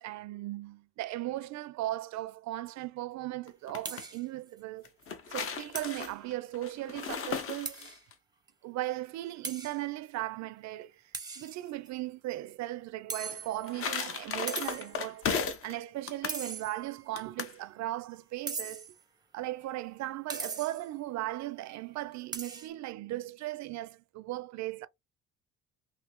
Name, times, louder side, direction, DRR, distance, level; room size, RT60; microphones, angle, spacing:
voice 1, 0.0-4.9 5.3-7.9 8.6-10.9 11.3-15.3 15.6-18.9 19.3-24.9, right 16 dB, 55° right, 0.5 m, -37 dB
sound 1, 3.5-4.0 4.8-8.1 13.3-15.7 16.1-16.4 17.2-17.6, left 6 dB, 40° left, 0.8 m, -36 dB
sound 2, 3.8-4.2 4.6-4.7 5.0-5.1 5.7-6.1 7.6-8.0 8.5-8.6 9.4-9.8 11.1-11.9 13.1-13.8 14.5-15.0 16.3-17.0 18.5-19.0 20.3-20.9 22.3-22.7, right 4 dB, 10° right, 0.6 m, -39 dB
3.3 x 2.7 x 3.0 m
cardioid pair, 130°, 33 cm